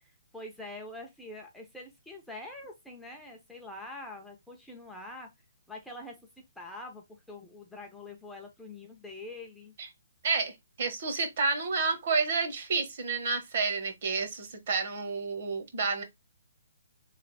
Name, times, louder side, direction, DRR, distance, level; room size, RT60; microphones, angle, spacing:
voice 1, 0.0-5.3 5.7-6.2 6.6-9.7, left 2 dB, ahead, 0.6 m, -45 dB
voice 2, 10.2-16.0, right 4 dB, 45° right, 1.0 m, -30 dB
3.2 x 2.5 x 4.0 m
hypercardioid pair, 165°, 0 cm